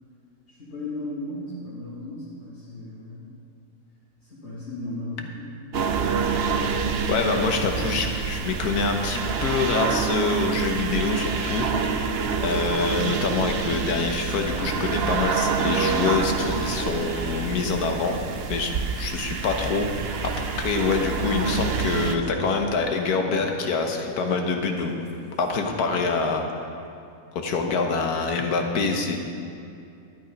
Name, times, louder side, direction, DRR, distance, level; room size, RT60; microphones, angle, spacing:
voice 1, 0.5-3.2 4.2-5.5, left 1 dB, 50° left, -9 dB, 2.2 m, -36 dB
sound 1, 5.7-22.2, right 6 dB, 55° right, 0.7 m, -27 dB
voice 2, 7.1-12.1 12.4-18.2 18.5-18.7 19.0-20.3 20.6-25.0 25.4-26.8 27.3-29.2, left 4 dB, 80° left, 4 dB, 1.6 m, -25 dB
sound 2, 20.0-25.8, equal, 25° right, 2.1 m, -42 dB
11.5 x 9.9 x 5.2 m, 2.5 s
omnidirectional pair, 1.6 m